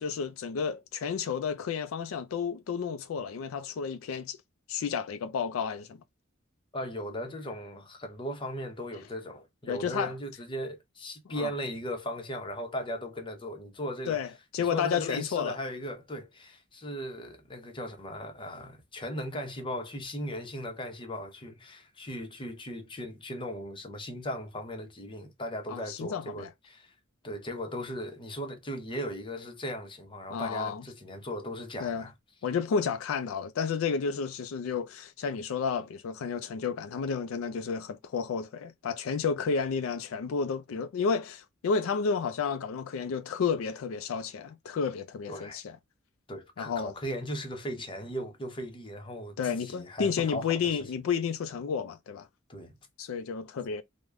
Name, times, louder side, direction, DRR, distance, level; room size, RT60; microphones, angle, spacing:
voice 1, 0.0-4.4 4.7-6.0 9.7-10.1 11.3-11.5 14.1-14.3 14.5-15.6 25.7-26.5 30.3-30.8 31.8-32.1 32.4-45.8 46.6-46.9 49.4-52.3 53.0-53.8, left 6 dB, 80° left, 0.4 m, -31 dB
voice 2, 6.7-14.2 14.6-26.9 27.2-32.1 45.3-45.6 46.3-50.6 52.5-52.8, equal, 25° left, 0.7 m, -37 dB
3.3 x 2.1 x 3.5 m
head